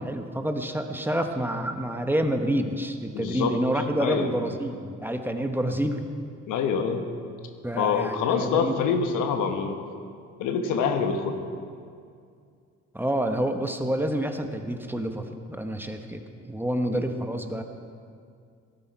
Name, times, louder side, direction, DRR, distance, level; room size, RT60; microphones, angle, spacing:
voice 1, 0.0-6.1 7.6-8.8 12.9-17.6, right 1 dB, 5° right, 5 dB, 1.0 m, -28 dB
voice 2, 3.1-3.6 4.0-4.3 6.5-7.1 7.7-9.8 10.4-11.4 16.9-17.0, left 6 dB, 90° left, 6 dB, 1.2 m, -26 dB
17.0 x 11.5 x 4.7 m, 2.3 s
cardioid pair, 90°, 30 cm